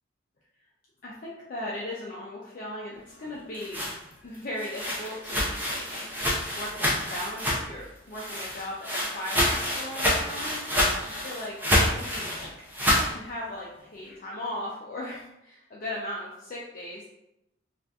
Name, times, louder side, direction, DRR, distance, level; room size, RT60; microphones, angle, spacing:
voice 1, 1.0-3.8 4.2-10.7 11.1-11.6 11.8-17.0, left 1 dB, 45° left, -5 dB, 0.4 m, -38 dB
sound 1, 3.3-7.8 8.1-13.1, left 1 dB, 10° right, 0.5 m, -27 dB
2.7 x 2.4 x 3.3 m, 0.87 s
head